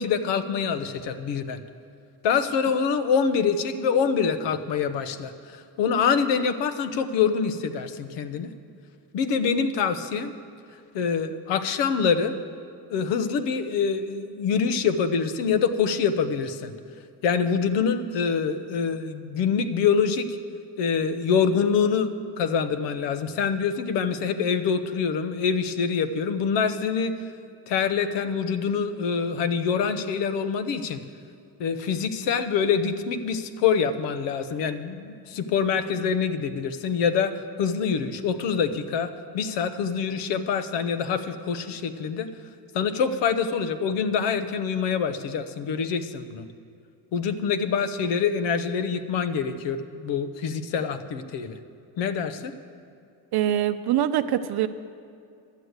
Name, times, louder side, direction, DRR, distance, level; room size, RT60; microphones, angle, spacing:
voice 1, 0.0-1.6 2.2-8.5 9.1-10.3 10.9-12.4 12.9-16.7 17.2-20.4 20.8-27.2 27.7-31.0 31.6-42.3 42.7-46.5 47.1-51.6 52.0-52.5, left 6 dB, 90° left, 10 dB, 0.8 m, -25 dB
voice 2, 53.3-54.7, right 11 dB, 65° right, 11 dB, 0.6 m, -23 dB
11.5 x 7.9 x 8.0 m, 2.5 s
cardioid pair, 105°, 41 cm